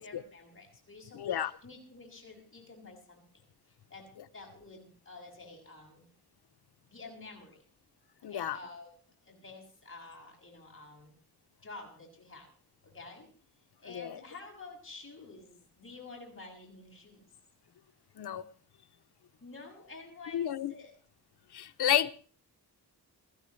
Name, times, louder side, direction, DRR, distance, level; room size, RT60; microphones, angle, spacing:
voice 1, 0.0-3.4 3.9-4.1 4.3-6.1 6.9-7.6 8.2-8.9 9.2-11.1 11.6-12.5 12.8-13.3 13.8-17.3 19.4-20.9, left 3 dB, 30° left, 6.6 m, -50 dB
voice 2, 1.1-1.5 8.2-8.6 13.9-14.2 18.2-18.4 20.3-20.7 21.5-22.1, left 10 dB, 75° left, 0.8 m, -31 dB
21.5 x 15.0 x 3.2 m
wide cardioid pair, 105°, 40 cm